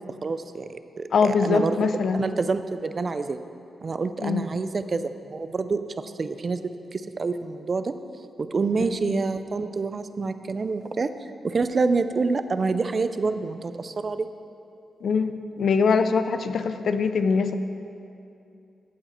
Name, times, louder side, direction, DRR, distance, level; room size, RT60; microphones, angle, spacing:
voice 1, 0.1-1.8 2.2-3.4 3.8-7.9 8.4-14.3, right 4 dB, 40° right, 11 dB, 0.4 m, -27 dB
voice 2, 1.1-2.3 4.2-4.5 8.8-8.9 15.0-17.6, left 5 dB, 65° left, 10 dB, 0.4 m, -23 dB
14.5 x 4.8 x 4.3 m, 2.6 s
cardioid pair, 90°, 0 cm